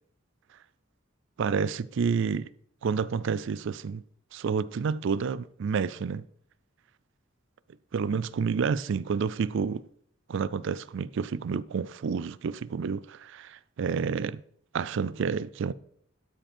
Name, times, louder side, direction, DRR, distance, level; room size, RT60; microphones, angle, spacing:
voice 1, 1.4-2.5 2.8-4.0 4.3-6.3 7.9-9.8 10.3-14.4 14.7-15.7, right 5 dB, 65° right, 0.4 m, -29 dB
12.5 x 5.2 x 4.4 m
head